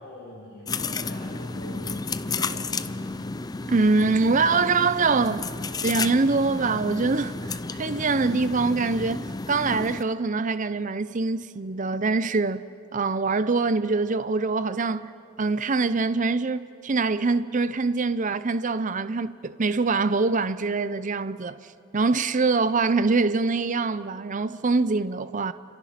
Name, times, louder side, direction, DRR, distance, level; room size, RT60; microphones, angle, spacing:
voice 1, 0.0-3.0, left 1 dB, 50° left, 7.0 m, -42 dB
sound 1, 0.7-10.0, left 3 dB, 20° left, 0.5 m, -32 dB
voice 2, 3.7-5.5 5.8-12.7 12.9-15.1 15.4-25.5, right 3 dB, 40° right, 0.6 m, -24 dB
29.0 x 26.5 x 5.9 m
head